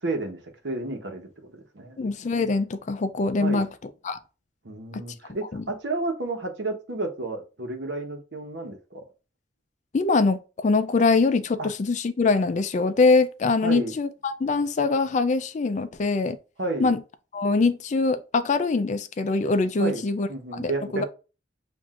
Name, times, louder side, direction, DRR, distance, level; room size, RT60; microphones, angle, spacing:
voice 1, 0.0-2.0 3.4-3.7 4.6-9.0 11.6-11.7 13.6-13.9 16.6-16.9 19.8-20.0 20.3-21.1, right 2 dB, 70° right, 1.0 m, -31 dB
voice 2, 2.0-4.2 4.9-5.0 5.5-5.6 9.9-16.4 16.8-17.0 17.3-21.0, left 3 dB, 40° left, 0.4 m, -23 dB
7.4 x 2.6 x 2.5 m
head